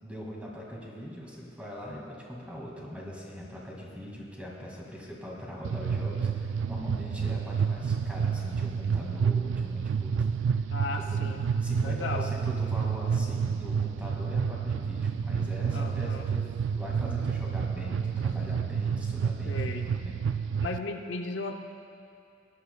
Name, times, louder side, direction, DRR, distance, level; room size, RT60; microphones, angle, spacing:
voice 1, 0.0-10.3 10.9-11.2 11.6-20.2, equal, 5° right, -3 dB, 2.0 m, -41 dB
sound 1, 5.6-20.8, right 6 dB, 80° right, 0.3 m, -29 dB
voice 2, 10.7-11.4 11.8-12.3 15.7-16.3 19.5-19.9 20.6-21.6, left 3 dB, 85° left, 3 dB, 0.7 m, -35 dB
20.0 x 11.0 x 2.3 m, 2.7 s
head